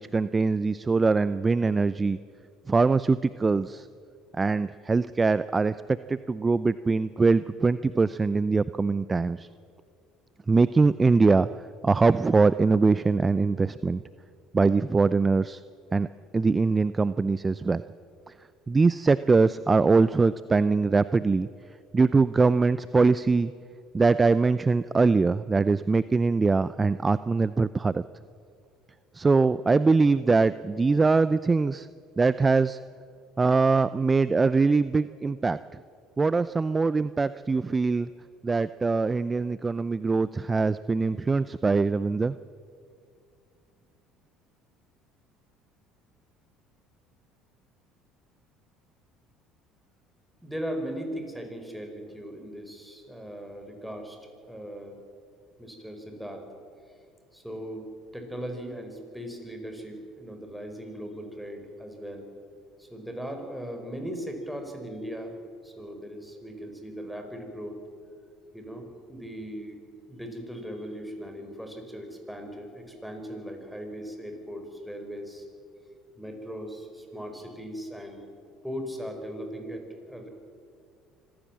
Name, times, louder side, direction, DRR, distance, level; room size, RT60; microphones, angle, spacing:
voice 1, 0.0-2.2 2.7-3.9 4.3-9.5 10.5-11.5 11.8-14.0 14.5-15.6 15.9-16.1 16.3-17.8 18.7-21.5 21.9-23.5 23.9-28.0 29.1-31.9 32.2-32.8 33.4-35.6 36.2-38.1 38.4-42.4, right 4 dB, 25° right, 16 dB, 0.5 m, -22 dB
voice 2, 50.4-55.0 55.6-56.5 57.3-62.3 62.8-65.4 65.6-67.8 68.5-69.8 70.1-75.5 76.2-78.2 78.6-80.3, equal, ahead, 4 dB, 5.0 m, -38 dB
25.5 x 15.5 x 7.5 m, 2.3 s
hypercardioid pair, 70°, 0 cm